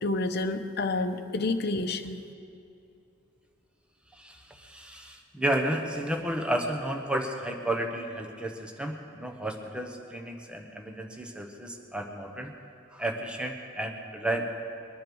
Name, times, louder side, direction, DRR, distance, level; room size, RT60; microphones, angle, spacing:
voice 1, 0.0-2.2, left 2 dB, 55° left, 6 dB, 0.9 m, -29 dB
voice 2, 4.1-12.5 12.9-14.5, right 1 dB, 5° right, 2 dB, 1.1 m, -32 dB
22.0 x 10.5 x 6.2 m, 2.6 s
head